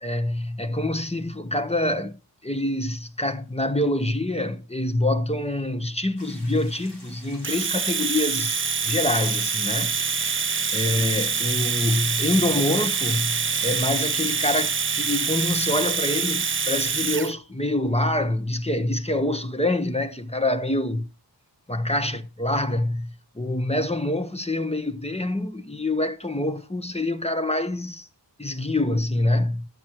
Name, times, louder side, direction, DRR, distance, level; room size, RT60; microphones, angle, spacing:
voice 1, 0.0-2.1 2.4-8.6 8.8-10.0 10.5-21.1 21.7-23.1 23.3-28.1 28.4-29.7, left 1 dB, 15° left, 1.1 m, -26 dB
sound 1, 6.2-11.8, left 1 dB, 75° left, 4.6 m, -46 dB
Domestic sounds home sounds, 7.4-17.3, right 6 dB, 30° right, 0.4 m, -25 dB
10.5 x 7.8 x 4.5 m
wide cardioid pair, 40°, 41 cm